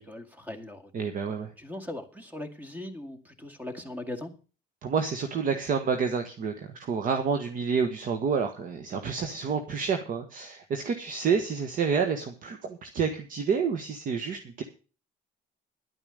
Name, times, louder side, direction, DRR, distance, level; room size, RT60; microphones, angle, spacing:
voice 1, 0.0-0.9 1.6-4.3, left 1 dB, 10° right, 8 dB, 2.2 m, -39 dB
voice 2, 0.9-1.5 4.8-14.6, right 6 dB, 55° right, 6 dB, 1.5 m, -29 dB
11.0 x 9.1 x 6.5 m, 0.36 s
cardioid pair, 110°, 17 cm